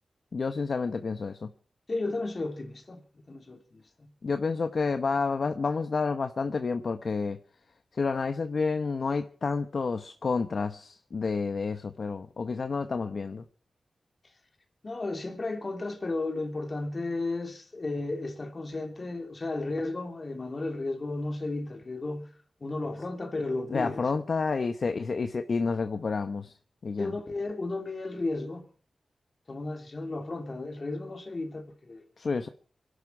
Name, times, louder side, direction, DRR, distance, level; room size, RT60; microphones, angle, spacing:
voice 1, 0.3-1.5 4.2-7.4 7.9-13.4 23.7-26.5 26.8-27.1 32.2-32.5, left 4 dB, 60° left, 1.0 m, -29 dB
voice 2, 1.9-4.1 14.8-22.3 22.6-24.0 27.0-28.7 29.5-32.1, left 2 dB, 40° left, 3.0 m, -34 dB
27.0 x 11.5 x 4.7 m
wide cardioid pair, 95°, 0 cm